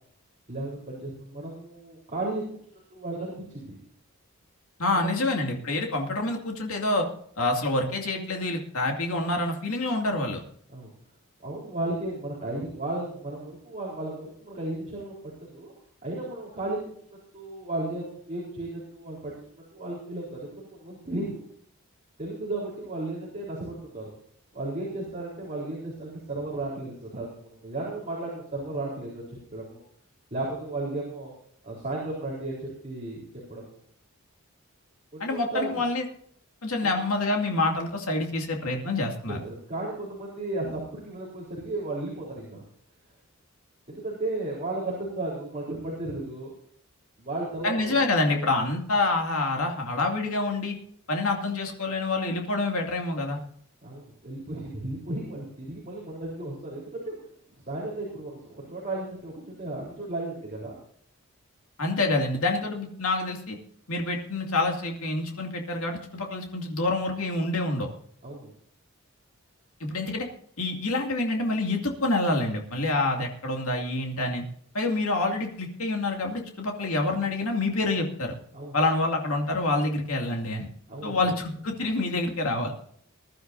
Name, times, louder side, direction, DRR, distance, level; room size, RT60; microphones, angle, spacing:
voice 1, 0.5-2.4 2.7-3.8 4.9-5.3 10.7-10.9 11.4-15.1 15.4-15.7 16.0-16.8 17.1-21.4 22.2-24.1 24.5-29.8 30.3-31.3 31.6-33.2 33.5-33.8 35.1-35.8 36.8-36.9 39.3-42.6 43.9-46.5 47.2-48.0 53.8-57.2 57.5-60.7 68.2-68.5 78.5-78.8 80.9-81.4, right 2 dB, 35° right, -4 dB, 4.0 m, -34 dB
voice 2, 4.8-7.1 7.4-10.4 35.2-36.0 36.6-39.4 47.6-50.8 51.1-53.4 61.8-63.6 63.9-67.9 69.8-70.3 70.6-74.4 74.7-78.4 78.7-80.7 81.0-82.7, left 2 dB, 75° left, 1 dB, 2.4 m, -27 dB
21.0 x 12.0 x 2.7 m, 0.63 s
head